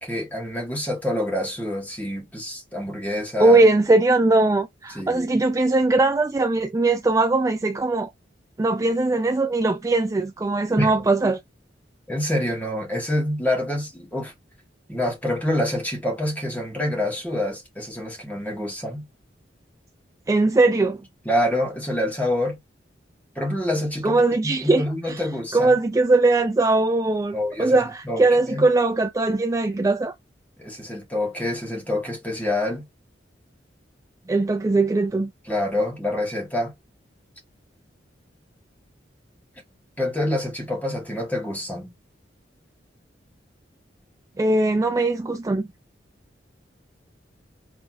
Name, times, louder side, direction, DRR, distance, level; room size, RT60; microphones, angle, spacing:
voice 1, 0.0-3.6 4.9-5.3 10.8-10.9 12.1-14.3 14.9-19.1 21.2-22.6 23.3-25.8 27.3-27.8 28.0-28.7 30.6-32.8 35.5-36.7 40.0-41.9, left 1 dB, 10° left, 1.4 m, -26 dB
voice 2, 3.4-8.1 8.6-11.4 20.3-21.0 24.0-25.2 25.5-30.1 34.3-35.3 44.4-45.7, right 2 dB, 20° right, 0.3 m, -20 dB
5.8 x 3.4 x 2.3 m
head